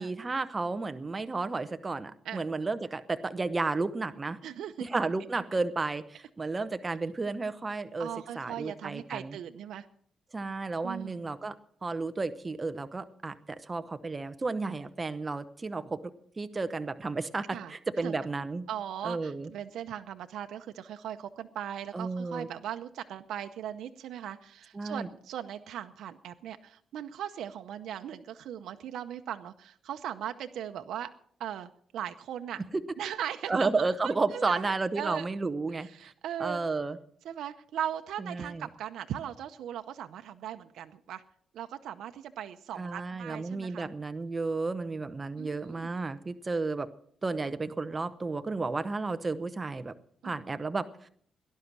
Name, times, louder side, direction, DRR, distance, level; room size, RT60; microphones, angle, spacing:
voice 1, 0.0-4.4 4.8-8.1 8.3-9.4 10.3-11.6 11.8-13.4 13.6-16.0 16.4-18.7 19.0-19.5 21.9-22.5 24.7-25.1 33.5-36.1 36.4-37.0 38.3-38.6 42.8-46.9 47.2-49.9 50.2-50.8, right 3 dB, 25° right, 10 dB, 0.8 m, -32 dB
voice 2, 4.4-4.9 8.0-9.9 10.8-11.2 17.5-17.7 18.0-18.1 18.7-31.1 31.4-32.6 33.0-33.7 34.0-35.2 35.8-36.6 37.2-41.2 41.5-43.9 45.4-45.9 50.2-50.6, right 10 dB, 90° right, 7 dB, 0.7 m, -39 dB
18.0 x 11.5 x 6.1 m, 0.62 s
cardioid pair, 115°, 0 cm